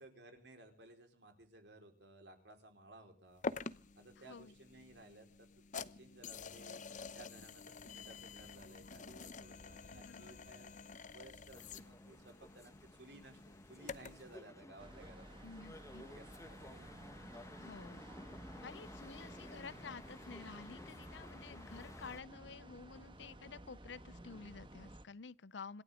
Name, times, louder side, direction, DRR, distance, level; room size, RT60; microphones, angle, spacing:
voice 1, 0.0-3.5 3.9-6.8 7.1-10.7 11.1-15.4 16.0-16.2 16.6-16.9, right 2 dB, 65° right, 4.5 m, -58 dB
sound 1, 3.4-14.3, left 4 dB, 45° left, 0.8 m, -48 dB
voice 2, 9.9-10.4 15.4-16.1 17.6-18.0 18.6-25.8, left 5 dB, 70° left, 0.6 m, -51 dB
sound 2, 11.5-22.2, left 1 dB, 15° left, 1.2 m, -55 dB
sound 3, 14.8-25.1, right 1 dB, 25° right, 1.6 m, -55 dB
27.0 x 12.0 x 3.7 m
head